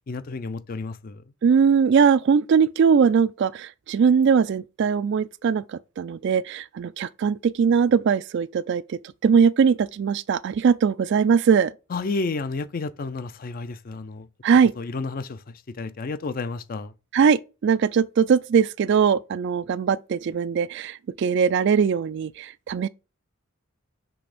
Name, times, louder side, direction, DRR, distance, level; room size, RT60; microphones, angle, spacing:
voice 1, 0.1-1.2 11.9-14.3 14.8-16.9, left 3 dB, 45° left, 0.4 m, -31 dB
voice 2, 1.4-11.7 14.4-14.7 17.1-22.9, right 6 dB, 55° right, 0.3 m, -21 dB
6.1 x 3.4 x 4.9 m
head